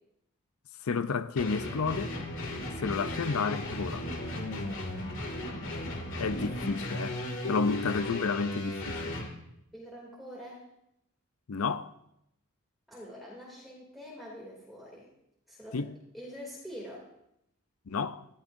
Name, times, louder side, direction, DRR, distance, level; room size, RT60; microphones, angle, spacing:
voice 1, 0.8-2.1 2.8-4.1 6.2-7.2 7.4-9.2 11.5-11.9 15.7-15.9 17.9-18.3, left 4 dB, 80° left, 0.6 m, -31 dB
sound 1, 1.4-9.3, left 1 dB, 60° left, 2.4 m, -36 dB
voice 2, 9.7-10.6 12.9-15.1 15.5-15.9 16.1-17.1, equal, ahead, 2.8 m, -45 dB
22.0 x 14.5 x 2.7 m
head